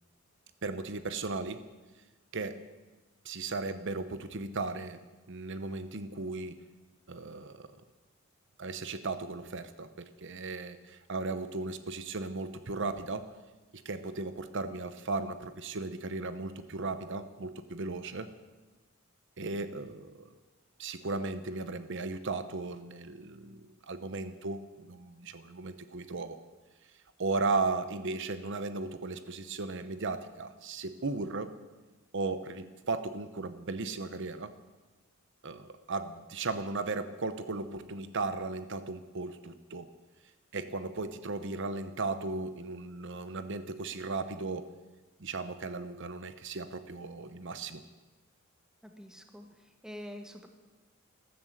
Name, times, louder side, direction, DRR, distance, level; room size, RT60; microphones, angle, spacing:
voice 1, 0.6-1.6 2.3-2.6 3.2-5.0 5.3-6.6 7.1-7.7 8.6-13.3 13.7-18.3 19.4-20.3 20.8-26.4 27.2-31.5 32.1-34.5 35.4-39.9 40.5-44.7 45.2-47.8, right 3 dB, 60° right, 11 dB, 0.9 m, -36 dB
voice 2, 48.8-50.5, left 1 dB, 5° right, 5 dB, 1.5 m, -46 dB
14.0 x 13.0 x 7.8 m, 1.2 s
head